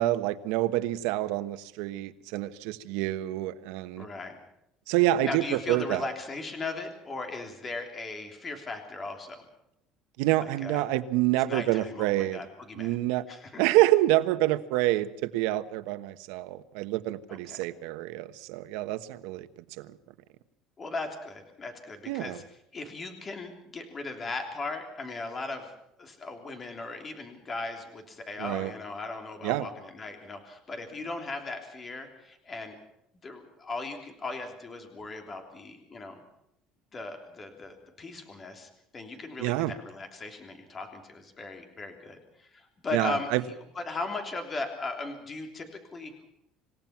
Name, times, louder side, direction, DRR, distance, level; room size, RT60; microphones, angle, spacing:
voice 1, 0.0-4.1 4.9-6.0 10.2-12.4 12.8-13.2 13.6-19.5 19.8-19.9 22.1-22.4 28.4-28.7 29.4-29.7 39.4-39.7 42.9-43.4, right 16 dB, 85° right, 1.3 m, -27 dB
voice 2, 4.0-4.4 5.2-9.4 10.4-10.9 11.5-13.0 13.3-13.6 17.3-17.7 20.8-22.4 22.7-25.7 26.0-32.8 33.2-36.2 36.9-43.3 43.7-46.1, left 3 dB, 20° left, 3.3 m, -38 dB
27.5 x 17.0 x 5.9 m
cardioid pair, 170°, 0 cm